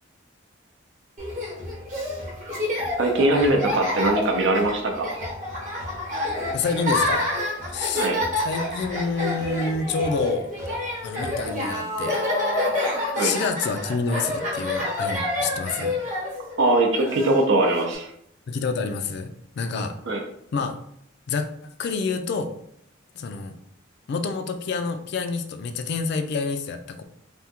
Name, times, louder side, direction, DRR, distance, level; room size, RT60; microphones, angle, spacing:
Laughter, 1.2-18.0, left 1 dB, 35° right, 0.9 m, -28 dB
voice 1, 3.0-5.2 7.9-8.2 13.2-13.3 16.6-18.1 20.1-20.2, right 2 dB, 65° right, 3 dB, 0.6 m, -21 dB
voice 2, 6.5-7.3 7.7-8.1 8.4-10.5 11.0-12.2 13.2-15.9 18.5-19.3 19.6-20.0 20.5-20.7 21.3-21.5 21.8-22.5 23.2-23.5 24.1-27.0, left 4 dB, 55° left, 7 dB, 0.3 m, -27 dB
3.4 x 2.2 x 2.8 m, 0.71 s
head